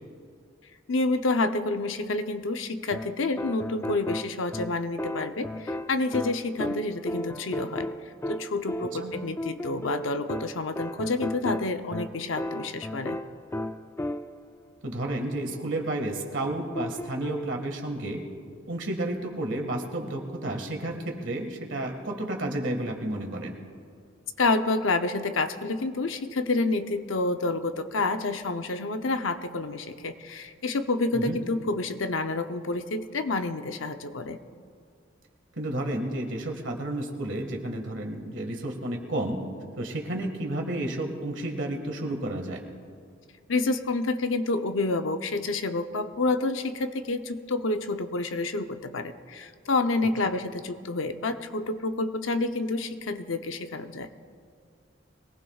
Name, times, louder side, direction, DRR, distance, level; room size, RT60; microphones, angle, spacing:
voice 1, 0.9-7.9 8.3-13.2 24.4-34.4 43.5-54.1, left 3 dB, 80° left, 8 dB, 0.7 m, -28 dB
sound 1, 2.9-14.5 16.8-17.6, left 1 dB, 15° left, 0.3 m, -35 dB
voice 2, 14.8-18.2 18.7-23.6 31.1-31.4 35.6-39.4 39.8-42.6 50.2-50.3, right 1 dB, 65° right, 3 dB, 1.8 m, -31 dB
22.5 x 18.5 x 2.4 m, 2.2 s
head